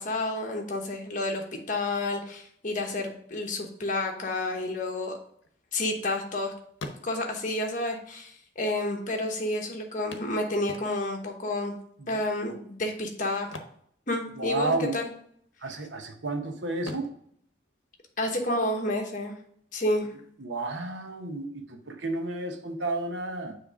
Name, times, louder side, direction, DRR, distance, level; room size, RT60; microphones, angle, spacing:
voice 1, 0.0-5.2 5.7-6.5 7.0-11.7 12.1-13.5 14.1-15.1 18.2-19.3 19.7-20.1, left 1 dB, 45° left, 2 dB, 1.0 m, -30 dB
sound 1, 5.3-6.4 6.7-7.5 8.4-8.5 8.8-8.9 10.1-11.3 13.3-14.7 14.9-15.2 15.7-16.3 16.8-18.5 20.5-20.6 21.0-21.1, left 2 dB, 85° left, 0.8 m, -44 dB
voice 2, 14.3-15.0 15.6-17.1 20.4-23.6, right 2 dB, 75° right, 5 dB, 0.9 m, -32 dB
7.1 x 3.2 x 4.9 m, 0.64 s
head